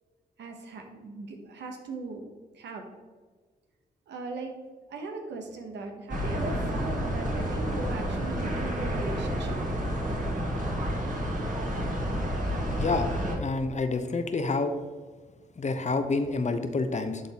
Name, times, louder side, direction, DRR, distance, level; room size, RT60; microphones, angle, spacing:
voice 1, 0.4-2.3 2.5-2.9 4.1-4.5 4.9-9.6, right 3 dB, 90° right, 3 dB, 0.9 m, -38 dB
sound 1, 6.1-13.4, equal, 50° right, 1.7 m, -30 dB
voice 2, 12.8-13.1 13.4-14.7 15.6-17.2, left 3 dB, 40° left, 8 dB, 0.8 m, -28 dB
11.0 x 4.0 x 2.9 m, 1.4 s
supercardioid pair, 50°, 18 cm